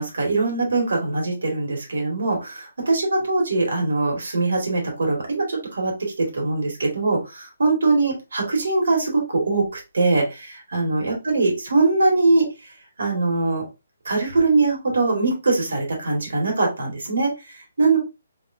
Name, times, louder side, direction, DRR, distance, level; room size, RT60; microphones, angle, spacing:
voice 1, 0.0-12.5 13.0-13.7 14.1-18.0, right 3 dB, 70° right, 1 dB, 1.9 m, -22 dB
3.5 x 3.1 x 2.6 m, 0.27 s
hypercardioid pair, 175°, 0 cm